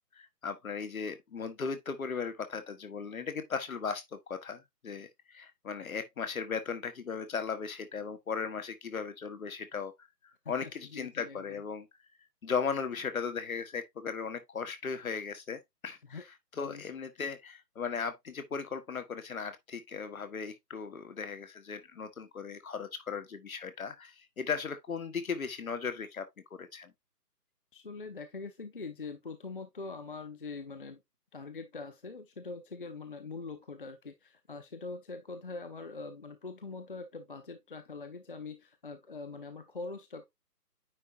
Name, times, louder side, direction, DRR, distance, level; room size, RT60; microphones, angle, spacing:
voice 1, 0.1-9.9 10.5-11.9 12.4-16.2 16.5-26.2 26.5-26.9, left 5 dB, 60° left, 1.5 m, -37 dB
voice 2, 10.4-11.6 16.1-16.2 16.6-16.8 27.7-31.0 31.3-40.2, left 4 dB, 35° left, 0.6 m, -43 dB
9.4 x 4.2 x 2.6 m
figure-of-eight pair, 150°, 48 cm